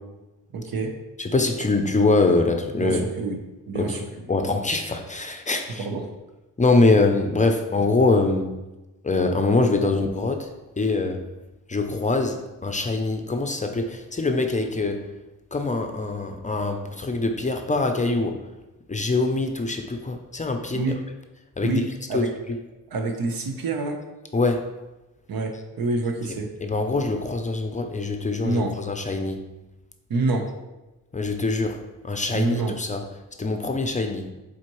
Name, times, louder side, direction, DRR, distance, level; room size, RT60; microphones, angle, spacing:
voice 1, 0.5-0.9 2.7-3.4 3.7-4.1 5.8-6.0 20.7-21.0 21.6-22.3 22.9-24.0 25.3-26.5 28.4-28.8 30.1-30.5 32.3-32.8, right 3 dB, 85° right, 4 dB, 0.9 m, -26 dB
voice 2, 1.2-3.0 3.7-4.0 4.3-5.9 6.6-8.5 9.0-10.5 10.8-11.2 11.7-15.1 15.5-18.5 18.9-20.9 21.6-21.8 22.1-22.3 24.3-24.7 26.6-29.4 31.1-33.0 33.4-34.3, left 3 dB, 20° left, 5 dB, 0.4 m, -23 dB
7.4 x 4.2 x 3.1 m, 1.1 s
wide cardioid pair, 160°, 34 cm